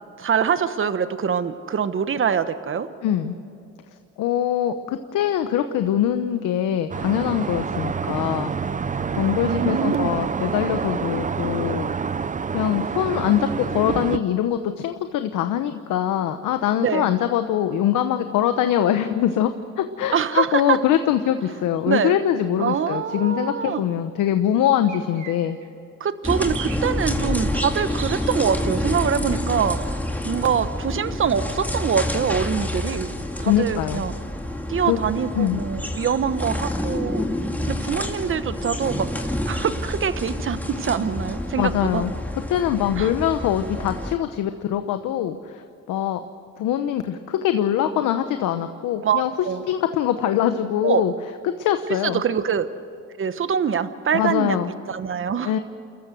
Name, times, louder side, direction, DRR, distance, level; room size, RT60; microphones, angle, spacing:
voice 1, 0.2-2.9 9.4-10.1 16.8-17.1 20.1-20.8 21.9-22.1 22.6-23.8 26.0-29.8 30.2-33.1 33.4-34.1 34.7-37.2 37.7-39.1 39.5-42.0 43.0-43.1 49.0-49.6 50.8-51.0 52.0-52.7 53.2-54.6 54.9-55.6, right 7 dB, 45° right, 11 dB, 1.2 m, -24 dB
voice 2, 3.0-3.4 4.2-8.5 9.2-11.9 12.5-19.5 19.8-25.6 33.4-34.0 34.9-35.0 35.3-35.6 41.6-42.1 42.5-46.2 46.6-49.3 49.7-51.1 51.4-52.2 54.1-54.7 55.4-55.6, left 10 dB, 90° left, 8 dB, 1.0 m, -23 dB
sound 1, 6.9-14.2, right 6 dB, 25° right, 0.6 m, -27 dB
sound 2, 21.8-21.9 24.8-25.7 26.3-26.9 27.9-28.6, right 8 dB, 80° right, 2.6 m, -38 dB
sound 3, 26.2-44.1, left 1 dB, 5° left, 2.3 m, -28 dB
29.5 x 14.5 x 7.9 m, 2.6 s
cardioid pair, 90°, 30 cm